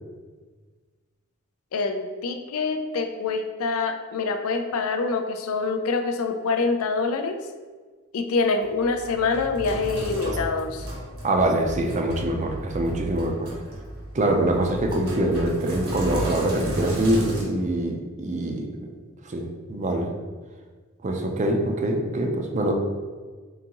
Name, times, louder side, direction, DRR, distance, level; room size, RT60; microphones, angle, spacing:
voice 1, 1.7-7.5 8.1-10.9, left 4 dB, 70° left, 7 dB, 0.4 m, -25 dB
Sink (filling or washing), 8.6-17.4, right 1 dB, 70° right, 1.1 m, -34 dB
voice 2, 11.2-13.5 14.1-18.9 19.3-20.1 21.0-22.7, right 1 dB, 35° right, 3 dB, 0.4 m, -24 dB
3.8 x 3.5 x 2.9 m, 1.4 s
head